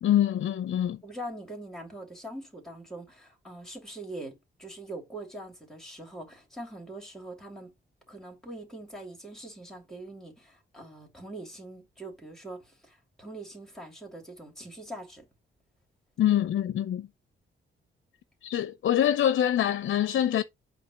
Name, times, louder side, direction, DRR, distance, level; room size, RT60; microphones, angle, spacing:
voice 1, 0.0-1.0 16.2-17.1 18.4-20.4, left 11 dB, 70° left, 0.5 m, -25 dB
voice 2, 1.0-7.7 8.1-15.3, right 1 dB, ahead, 2.7 m, -43 dB
8.2 x 2.9 x 6.2 m
wide cardioid pair, 180°, 20 cm